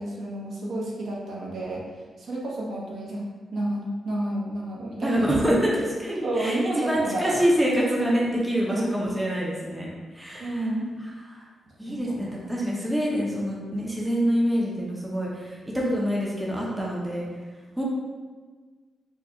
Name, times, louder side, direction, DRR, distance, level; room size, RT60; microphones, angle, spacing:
voice 1, 0.0-1.8 2.2-3.3 3.5-5.6 6.2-7.5 8.7-8.8 10.4-10.9 11.9-12.4, right 1 dB, 65° right, -4 dB, 0.9 m, -30 dB
voice 2, 5.0-5.7 6.0-9.9 10.1-10.5 11.3-11.4 11.8-17.2 17.8-17.9, equal, 5° right, -4 dB, 0.6 m, -26 dB
4.6 x 2.3 x 2.9 m, 1.4 s
wide cardioid pair, 130°, 0 cm